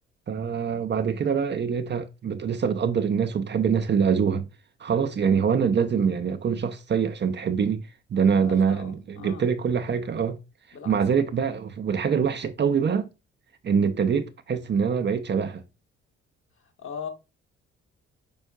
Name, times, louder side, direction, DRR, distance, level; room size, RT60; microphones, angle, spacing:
voice 1, 0.3-4.5 4.8-7.8 8.1-10.4 10.9-13.1 13.6-15.6, right 6 dB, 35° right, 0.5 m, -24 dB
voice 2, 8.4-9.4 10.7-11.2 16.8-17.1, left 6 dB, 45° left, 1.2 m, -39 dB
5.3 x 4.3 x 2.3 m
hypercardioid pair, 45°, 30 cm